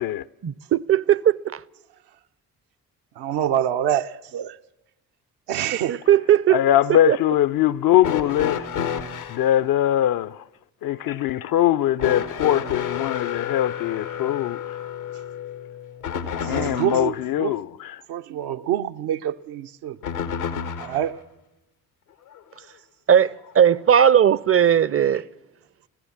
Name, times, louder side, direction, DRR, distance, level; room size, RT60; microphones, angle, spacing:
voice 1, 0.4-1.6 5.9-6.6 7.1-7.2 23.1-25.2, right 9 dB, 30° right, 0.6 m, -18 dB
voice 2, 3.2-4.6 5.5-6.0 11.1-11.2 16.4-17.5 18.1-20.0 20.8-21.2, right 11 dB, 65° right, 0.8 m, -26 dB
voice 3, 6.5-8.7 9.3-10.4 10.8-14.8 16.3-18.0, left 12 dB, 55° left, 0.6 m, -22 dB
sound 1, 8.0-9.5 12.0-17.1 20.0-21.1 22.3-22.4 23.5-23.6, left 8 dB, 90° left, 1.5 m, -30 dB
25.5 x 16.0 x 7.3 m
hypercardioid pair, 45°, 43 cm